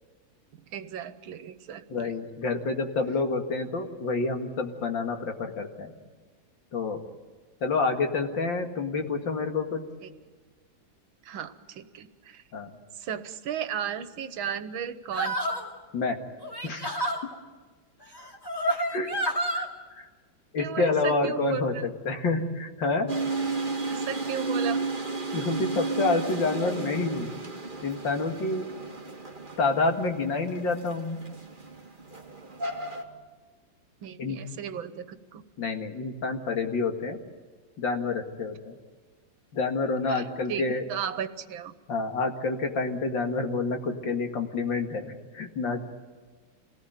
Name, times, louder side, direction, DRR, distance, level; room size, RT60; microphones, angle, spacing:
voice 1, 0.7-2.1 10.0-10.1 11.2-12.4 13.0-15.4 20.6-21.8 23.5-24.8 34.0-35.4 40.1-40.6 40.9-41.7, right 8 dB, 85° right, 11 dB, 1.9 m, -35 dB
voice 2, 1.9-5.9 6.7-7.0 7.6-9.8 12.5-12.7 15.9-16.2 16.6-16.8 18.9-19.1 19.5-19.6 20.0-20.1 20.5-23.1 25.3-27.3 27.8-28.6 29.6-31.2 34.2-34.4 35.6-37.2 37.8-38.7 39.5-40.8 41.9-45.8, left 3 dB, 70° left, 4 dB, 2.7 m, -28 dB
sound 1, 15.1-15.7 16.4-17.2 18.1-19.7, right 1 dB, 10° left, 2.5 m, -29 dB
sound 2, 23.1-33.0, right 3 dB, 25° right, 2.3 m, -33 dB
27.0 x 18.5 x 9.2 m, 1.4 s
omnidirectional pair, 2.1 m